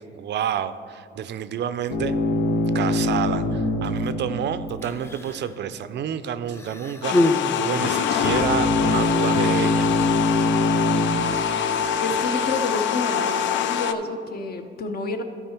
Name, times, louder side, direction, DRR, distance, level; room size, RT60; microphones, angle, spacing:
voice 1, 0.1-2.2 2.7-9.9 10.3-10.5, right 9 dB, 60° right, 12 dB, 0.4 m, -29 dB
sound 1, 1.9-5.3 8.2-11.0, left 1 dB, 90° left, 1.2 m, -23 dB
Human voice, 4.7-5.6 6.5-8.4 9.3-9.5, left 2 dB, 15° left, 0.4 m, -26 dB
sound 2, 7.0-13.9, left 8 dB, 70° left, 0.4 m, -24 dB
voice 2, 12.0-15.2, left 3 dB, 50° left, 6 dB, 0.8 m, -29 dB
12.5 x 4.8 x 4.4 m, 2.3 s
cardioid pair, 90°, 20 cm